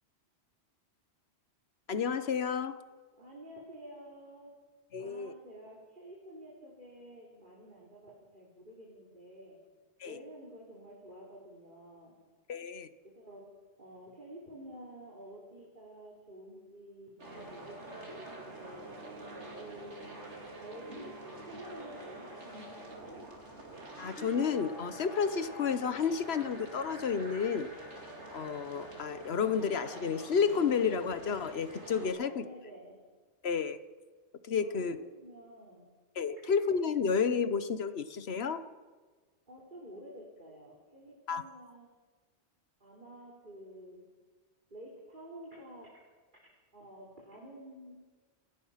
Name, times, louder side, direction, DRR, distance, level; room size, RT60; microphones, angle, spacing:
voice 1, 1.9-2.8 4.9-5.3 10.0-10.2 12.5-12.9 24.0-27.7 28.3-32.4 33.4-33.8 34.4-35.0 36.2-38.6 41.3-41.4, left 6 dB, 65° left, 12 dB, 1.3 m, -31 dB
voice 2, 3.2-4.5 5.0-9.6 10.0-12.1 13.0-13.5 13.8-18.9 19.4-20.2 20.6-21.1 21.4-23.2 32.0-33.0 34.6-35.9 39.5-41.9 42.8-44.1 44.7-45.9 46.7-48.0, right 1 dB, 45° right, -5 dB, 4.1 m, -50 dB
sound 1, 17.2-32.1, right 1 dB, 85° right, 3.7 m, -46 dB
28.0 x 17.0 x 5.8 m, 1.4 s
omnidirectional pair, 1.1 m